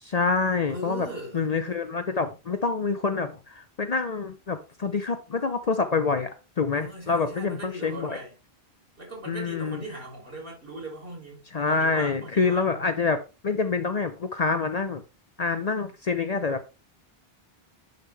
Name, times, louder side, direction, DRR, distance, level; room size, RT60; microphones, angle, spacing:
voice 1, 0.0-1.1 1.3-6.3 6.6-8.2 9.3-9.8 11.5-13.2 13.4-15.0 15.4-16.7, left 4 dB, 45° left, 0.7 m, -26 dB
voice 2, 0.7-1.5 6.7-8.4 9.0-12.7, right 1 dB, 60° right, 3.5 m, -39 dB
10.5 x 3.8 x 3.3 m
omnidirectional pair, 1.0 m